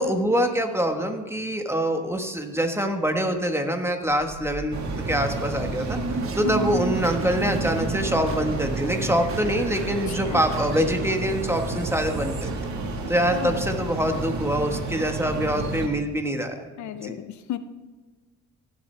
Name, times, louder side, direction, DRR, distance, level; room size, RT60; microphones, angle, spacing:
voice 1, 0.0-4.8 5.1-6.0 6.3-12.7 13.1-16.7 17.0-17.2, equal, 10° right, 5 dB, 1.4 m, -25 dB
sound 1, 4.1-13.2, right 4 dB, 45° right, 1.3 m, -34 dB
sound 2, 4.7-15.9, right 3 dB, 70° right, 1.7 m, -31 dB
voice 2, 10.1-10.4 13.3-13.6 16.8-17.6, left 12 dB, 70° left, 12 dB, 0.7 m, -34 dB
17.0 x 7.6 x 3.4 m, 1.3 s
cardioid pair, 90°, 30 cm